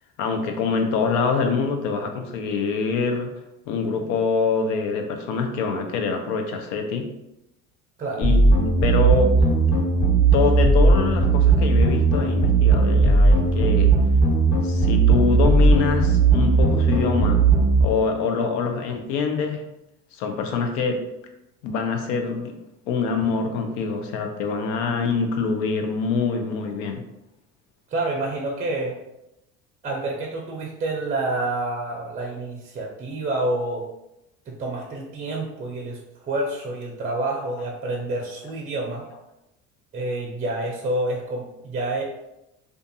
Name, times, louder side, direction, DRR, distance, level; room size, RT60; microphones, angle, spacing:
voice 1, 0.2-3.3 3.7-7.1 8.2-9.3 10.3-13.9 14.6-17.4 17.8-19.6 20.1-21.0 21.6-22.5 22.9-27.0, left 5 dB, 85° left, 5 dB, 0.5 m, -25 dB
sound 1, 8.2-17.8, right 3 dB, 40° left, 1.2 m, -17 dB
voice 2, 27.9-28.9 29.8-33.9 34.5-39.0 39.9-42.0, right 2 dB, 25° right, -1 dB, 0.4 m, -28 dB
2.5 x 2.4 x 2.6 m, 0.88 s
cardioid pair, 120°, 31 cm